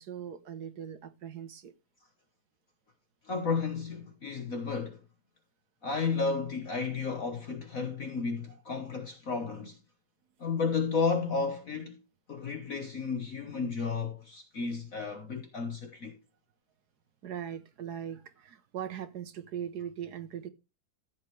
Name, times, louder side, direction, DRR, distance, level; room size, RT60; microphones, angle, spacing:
voice 1, 0.0-1.7 8.5-8.6 9.4-9.6 17.2-20.5, right 9 dB, 60° right, 1.3 m, -40 dB
voice 2, 3.2-5.0 5.8-9.8 10.4-12.0 12.3-16.2, left 4 dB, 45° left, 1.5 m, -32 dB
14.5 x 7.4 x 3.3 m
omnidirectional pair, 2.2 m